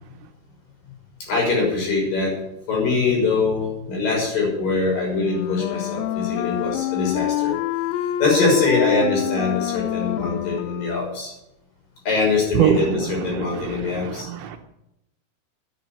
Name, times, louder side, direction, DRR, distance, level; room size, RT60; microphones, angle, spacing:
voice 1, 1.3-2.3 2.7-7.5 8.2-11.3 12.1-14.3, left 3 dB, 45° left, 7.8 m, -23 dB
Wind instrument woodwind instrument, 5.1-11.2, left 13 dB, 80° left, 2.7 m, -27 dB
voice 2, 12.6-14.6, right 10 dB, 75° right, 3.2 m, -24 dB
10.5 x 10.5 x 9.4 m
omnidirectional pair, 5.4 m